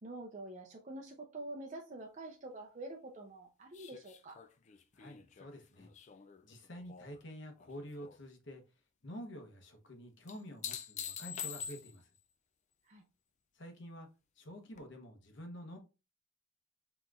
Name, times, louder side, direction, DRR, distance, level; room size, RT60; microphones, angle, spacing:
voice 1, 0.0-4.4 12.8-13.0, right 2 dB, 35° right, 0.6 m, -46 dB
sound 1, 3.7-7.2 7.6-8.2 10.3-12.2 14.8-14.9, left 8 dB, 35° left, 0.4 m, -46 dB
voice 2, 4.9-5.9 6.4-8.6 9.0-12.1 13.5-14.1 14.4-15.8, equal, 60° left, 1.1 m, -48 dB
5.6 x 3.0 x 2.4 m
head